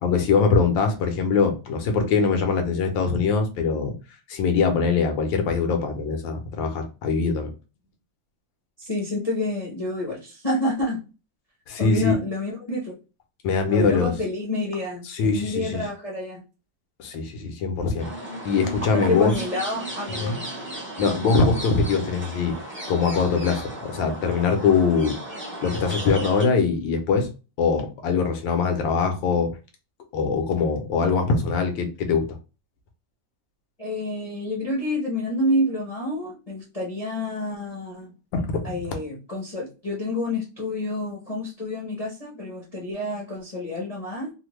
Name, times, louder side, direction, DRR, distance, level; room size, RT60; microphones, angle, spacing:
voice 1, 0.0-3.9 4.3-7.5 11.7-12.2 13.4-14.1 15.1-15.8 17.0-18.1 18.4-19.3 20.2-20.4 21.0-22.6 22.9-25.2 25.6-27.3 27.6-29.5 30.1-32.4 38.3-38.7, left 5 dB, 80° left, 1.5 m, -22 dB
voice 2, 8.8-11.0 11.8-12.9 13.7-16.4 18.9-20.5 33.8-38.1 38.6-44.3, left 1 dB, 35° left, 0.6 m, -28 dB
sound 1, 18.0-26.4, right 1 dB, 20° right, 0.3 m, -35 dB
3.4 x 2.1 x 3.0 m
omnidirectional pair, 2.0 m